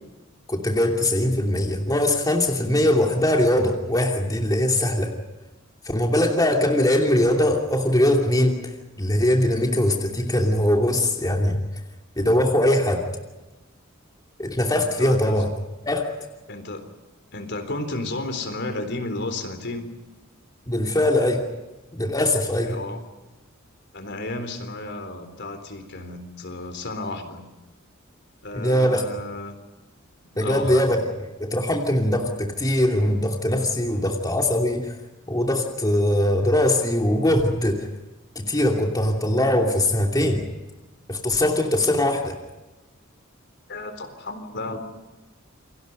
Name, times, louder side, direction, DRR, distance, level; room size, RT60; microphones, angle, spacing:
voice 1, 0.5-5.1 5.8-11.6 12.2-13.1 14.4-15.5 15.8-16.1 20.7-21.5 21.9-22.9 28.5-29.1 30.4-31.1 31.4-34.9 35.3-37.9 38.3-40.5 41.1-42.4, left 1 dB, 20° left, 1 dB, 2.8 m, -21 dB
voice 2, 14.8-15.4 16.5-16.9 17.3-19.9 22.7-23.0 23.9-27.5 28.4-29.5 30.3-30.8 43.7-44.8, left 2 dB, 60° left, 7 dB, 3.9 m, -32 dB
29.0 x 24.0 x 5.4 m, 1.1 s
head